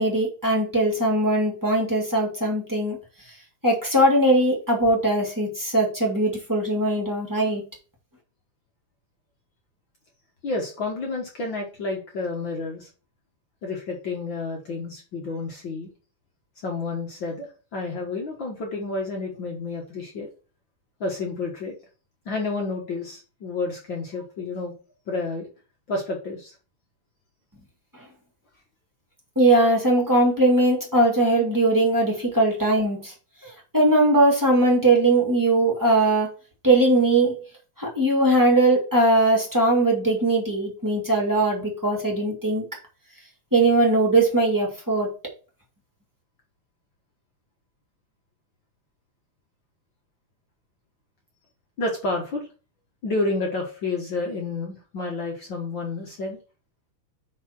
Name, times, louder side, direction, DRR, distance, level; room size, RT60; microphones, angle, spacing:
voice 1, 0.0-3.0 3.6-7.6 29.3-33.1 33.4-36.3 36.6-37.4 37.8-42.6 43.5-45.1, right 2 dB, 10° right, -1 dB, 1.3 m, -20 dB
voice 2, 10.4-12.9 13.6-15.9 16.6-20.3 21.0-21.7 22.2-24.7 25.1-25.5 25.9-26.6 51.8-52.5 53.0-56.4, left 3 dB, 60° left, 0 dB, 1.3 m, -30 dB
5.7 x 4.1 x 5.9 m, 0.35 s
omnidirectional pair, 3.8 m